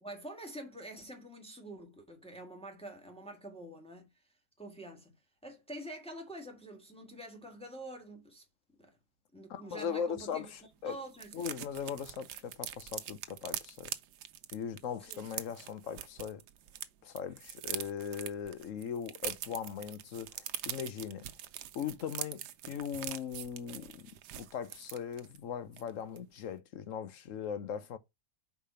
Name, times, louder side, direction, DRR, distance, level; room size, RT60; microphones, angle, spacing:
voice 1, 0.0-4.1 4.6-5.2 5.4-8.4 8.8-9.0 9.3-10.5 10.8-11.3 15.0-15.2, right 1 dB, 5° left, 1.4 m, -46 dB
voice 2, 9.5-11.0 11.3-13.9 14.5-16.4 17.0-21.3 21.7-22.4 22.7-28.0, left 7 dB, 60° left, 1.1 m, -39 dB
sound 1, 10.2-10.3 10.5-10.6 10.9-16.9 17.1-25.4 25.7-25.9 26.2-26.4, right 11 dB, 90° right, 1.3 m, -43 dB
5.0 x 4.9 x 5.6 m
omnidirectional pair, 1.7 m